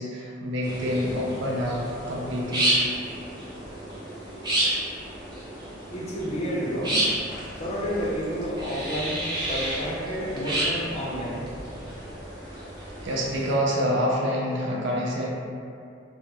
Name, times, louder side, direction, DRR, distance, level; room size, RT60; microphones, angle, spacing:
voice 1, 0.0-2.8 13.0-15.3, equal, 75° right, -3 dB, 0.5 m, -27 dB
sound 1, 0.6-13.5, right 1 dB, 25° right, 0.5 m, -31 dB
voice 2, 5.9-7.0 7.6-11.4, equal, 35° left, -6 dB, 0.5 m, -30 dB
2.3 x 2.0 x 2.9 m, 2.5 s
head